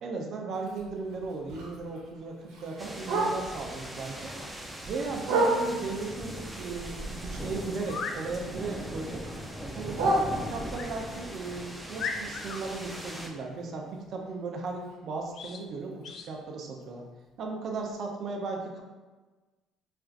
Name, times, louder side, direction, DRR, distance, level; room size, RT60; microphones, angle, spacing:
voice 1, 0.0-4.3 4.9-9.2 9.8-10.0 10.5-17.1 17.4-18.8, right 3 dB, 55° right, 1 dB, 0.5 m, -36 dB
Bark, 0.5-3.7 4.1-6.0 6.5-8.3 8.6-10.9 11.4-15.3 15.6-15.7 16.0-16.4 16.8-16.9 17.3-17.4 17.9-18.0, right 2 dB, 90° right, 0.8 m, -33 dB
sound 1, 2.8-13.3, right 1 dB, 5° right, 0.5 m, -40 dB
sound 2, 7.8-8.2 10.7-10.9 11.5-11.6 12.0-12.6 15.3-15.6 16.0-16.3, left 5 dB, 55° left, 0.3 m, -36 dB
4.3 x 2.5 x 2.4 m, 1.3 s
cardioid pair, 110°, 0 cm